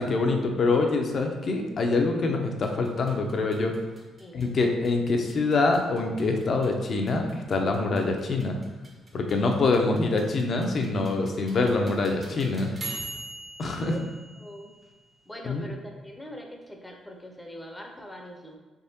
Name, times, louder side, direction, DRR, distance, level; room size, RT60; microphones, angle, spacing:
voice 1, 0.0-3.7 4.3-8.6 9.1-12.7 13.6-13.9 15.4-15.7, left 3 dB, 50° left, 3 dB, 0.5 m, -25 dB
sound 1, 2.6-15.3, right 2 dB, 35° right, 0.9 m, -45 dB
voice 2, 13.7-14.1 14.4-14.7 15.3-18.6, equal, 10° left, 1 dB, 0.6 m, -42 dB
3.5 x 3.3 x 2.8 m, 1.3 s
cardioid pair, 90°, 0 cm